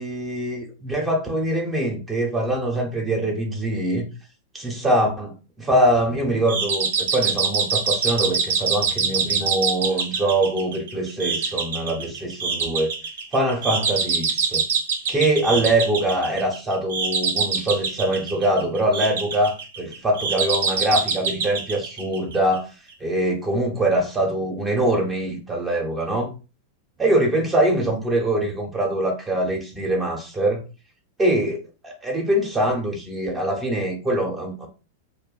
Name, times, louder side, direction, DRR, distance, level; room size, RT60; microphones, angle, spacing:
voice 1, 0.0-4.0 4.5-12.9 13.3-14.6 15.1-22.7 23.0-26.3 27.0-30.6 31.2-34.7, right 1 dB, 15° right, 1 dB, 0.8 m, -23 dB
sound 1, 6.5-22.6, right 5 dB, 75° right, 0.5 m, -25 dB
2.5 x 2.2 x 2.3 m, 0.33 s
hypercardioid pair, 115°, 0 cm